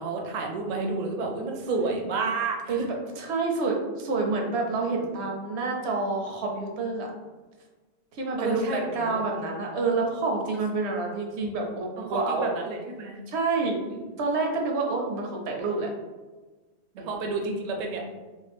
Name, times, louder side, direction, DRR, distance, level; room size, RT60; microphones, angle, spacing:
voice 1, 0.0-2.9 8.4-9.2 12.0-13.2 17.1-18.0, right 3 dB, 55° right, 1 dB, 0.5 m, -30 dB
voice 2, 1.7-2.2 2.7-7.1 8.1-12.5 13.3-15.9 16.9-17.1, right 3 dB, 80° right, 1 dB, 0.9 m, -28 dB
2.6 x 2.1 x 3.3 m, 1.3 s
omnidirectional pair, 1.1 m